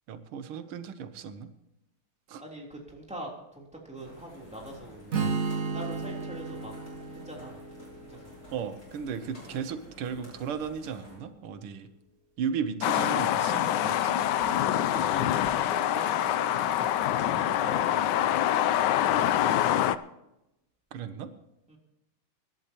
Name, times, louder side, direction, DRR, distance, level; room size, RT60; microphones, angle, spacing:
voice 1, 0.1-1.5 2.3-2.4 8.5-11.9 12.4-14.3 20.9-21.3, right 7 dB, 90° right, 10 dB, 1.8 m, -35 dB
voice 2, 2.4-5.4 5.7-6.7 7.2-7.6 8.0-8.4 9.5-9.6 14.4-16.9 17.2-18.4 21.7-21.8, right 1 dB, 5° right, -2 dB, 3.3 m, -43 dB
sound 1, 3.9-11.2, left 1 dB, 35° left, 7.4 m, -51 dB
Strum, 5.1-9.3, right 4 dB, 45° right, 1.7 m, -34 dB
sound 2, 12.8-20.0, left 11 dB, 70° left, 1.0 m, -25 dB
24.5 x 11.5 x 3.0 m, 0.90 s
omnidirectional pair, 2.3 m